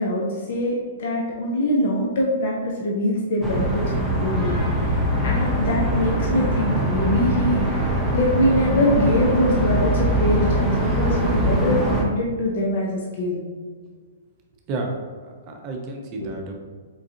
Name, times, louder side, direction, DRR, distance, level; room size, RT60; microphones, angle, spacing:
voice 1, 0.0-3.7 4.2-4.9 5.2-13.4 16.2-16.3, left 1 dB, 60° left, -2 dB, 0.6 m, -23 dB
sound 1, 3.4-12.0, right 1 dB, 5° left, 0.7 m, -22 dB
voice 2, 14.7-15.1 15.5-16.5, right 2 dB, 40° right, 2 dB, 0.6 m, -30 dB
4.6 x 2.4 x 2.7 m, 1.5 s
hypercardioid pair, 120°, 0 cm